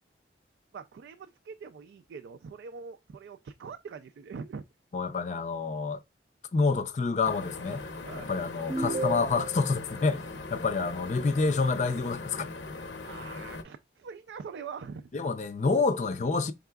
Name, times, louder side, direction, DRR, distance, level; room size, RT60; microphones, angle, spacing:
voice 1, 0.7-4.6 8.1-8.3 13.0-15.1, right 5 dB, 75° right, 0.3 m, -43 dB
voice 2, 4.9-6.0 6.5-7.8 8.1-12.5 15.1-16.5, left 4 dB, 40° left, 0.4 m, -28 dB
sound 1, 7.2-13.6, left 3 dB, 85° left, 0.7 m, -40 dB
sound 2, 8.7-9.7, right 3 dB, 40° right, 0.7 m, -32 dB
4.7 x 3.5 x 2.2 m
head